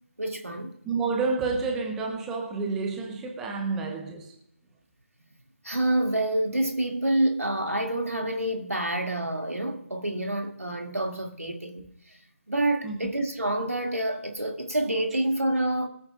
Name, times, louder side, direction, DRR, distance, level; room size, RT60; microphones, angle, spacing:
voice 1, 0.2-0.8 5.6-11.9 12.5-15.9, right 1 dB, 85° right, 2.2 m, -27 dB
voice 2, 0.8-4.3 12.8-13.0, right 4 dB, 5° right, 0.6 m, -29 dB
22.0 x 8.8 x 2.4 m
figure-of-eight pair, 165°, 8 cm